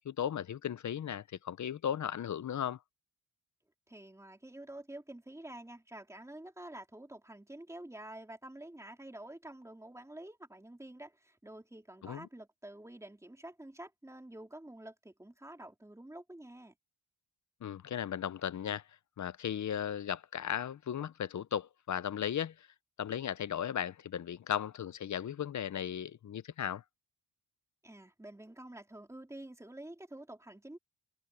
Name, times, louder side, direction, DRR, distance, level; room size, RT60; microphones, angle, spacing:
voice 1, 0.0-2.8 12.0-12.3 17.6-18.8 19.2-22.7 23.0-26.8, left 9 dB, 40° left, 0.6 m, -36 dB
voice 2, 3.9-16.7 27.8-30.8, right 1 dB, 5° right, 3.5 m, -49 dB
wide cardioid pair, 160°, 44 cm